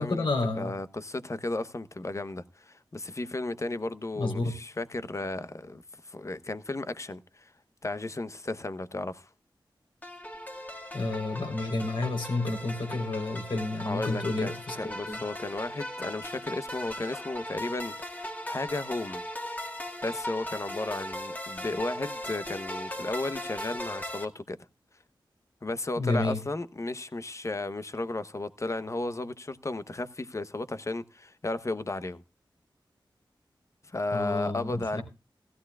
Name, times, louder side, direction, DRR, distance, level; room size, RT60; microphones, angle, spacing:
voice 1, 0.0-0.7 4.2-4.5 10.9-15.2 26.0-26.4 34.1-35.0, left 2 dB, 75° left, 3.8 m, -30 dB
voice 2, 0.5-7.5 7.8-9.3 13.9-19.2 20.0-24.6 25.6-32.2 33.8-35.0, left 2 dB, 35° left, 0.9 m, -34 dB
sound 1, 10.0-24.2, left 1 dB, 20° left, 2.0 m, -38 dB
16.0 x 14.0 x 2.4 m
wide cardioid pair, 65°, 9 cm